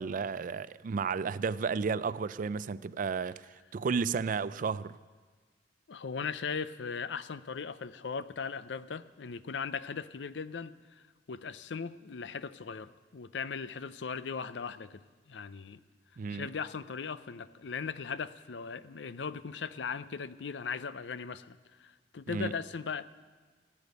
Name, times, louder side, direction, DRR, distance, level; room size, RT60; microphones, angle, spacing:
voice 1, 0.0-5.0 16.2-16.5 22.3-22.5, right 5 dB, 50° right, 0.4 m, -33 dB
voice 2, 5.9-15.8 16.3-23.0, left 5 dB, 85° left, 0.6 m, -38 dB
15.5 x 8.4 x 9.4 m
head